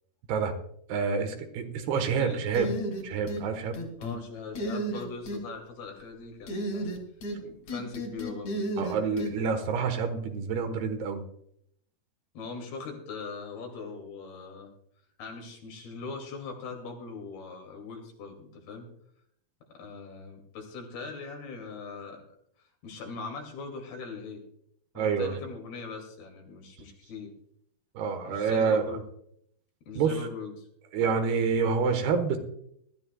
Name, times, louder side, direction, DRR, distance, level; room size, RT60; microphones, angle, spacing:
voice 1, 0.9-2.7 3.0-3.8 8.8-11.2 25.0-25.4 27.9-29.0 30.0-30.3 30.9-32.4, right 5 dB, 85° right, 7 dB, 3.3 m, -27 dB
sound 1, 2.5-3.4 3.7-4.2 4.6-5.4 6.5-7.4 7.7-9.3, right 1 dB, 50° left, 3.5 m, -33 dB
voice 2, 4.0-7.0 7.4-8.8 12.3-14.7 15.2-18.9 19.7-22.2 22.8-24.4 24.9-27.3 28.3-29.0 29.9-30.7, left 4 dB, 80° left, 2 dB, 4.3 m, -41 dB
21.5 x 12.5 x 2.3 m, 0.70 s
omnidirectional pair, 4.4 m